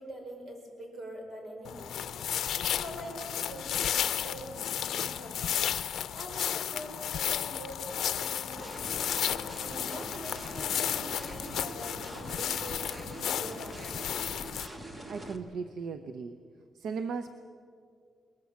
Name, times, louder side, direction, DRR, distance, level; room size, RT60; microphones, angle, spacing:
voice 1, 0.0-9.0 9.6-14.1, right 1 dB, 50° right, 2 dB, 5.2 m, -45 dB
sound 1, 1.6-14.7, left 9 dB, 75° left, 0.7 m, -33 dB
sound 2, 8.6-15.4, right 1 dB, 20° right, 1.6 m, -43 dB
voice 2, 15.1-16.4 16.8-17.3, right 5 dB, 70° right, 9 dB, 0.8 m, -36 dB
21.0 x 20.5 x 7.3 m, 2.3 s
wide cardioid pair, 145°, 0 cm